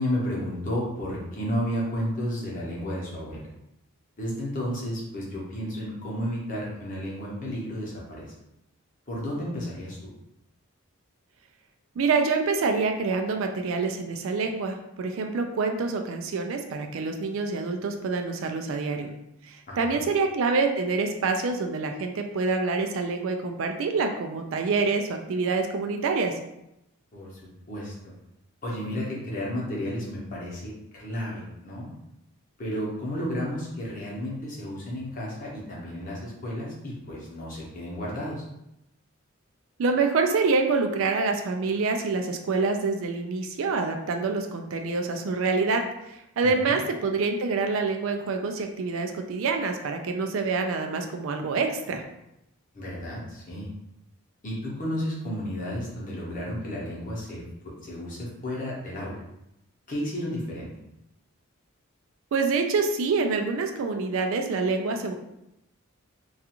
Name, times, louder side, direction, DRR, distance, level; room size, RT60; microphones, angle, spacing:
voice 1, 0.0-3.4 4.2-8.2 9.1-10.0 19.7-20.0 27.1-27.4 27.7-27.9 28.6-31.9 32.6-38.4 46.6-46.8 52.7-53.7 54.4-57.4 57.8-59.2 59.9-60.7, equal, 35° left, -5 dB, 0.8 m, -32 dB
voice 2, 12.0-19.1 19.4-26.3 39.8-45.8 46.4-52.0 62.3-65.1, right 4 dB, 65° right, 5 dB, 0.3 m, -26 dB
2.4 x 2.4 x 2.8 m, 0.83 s
head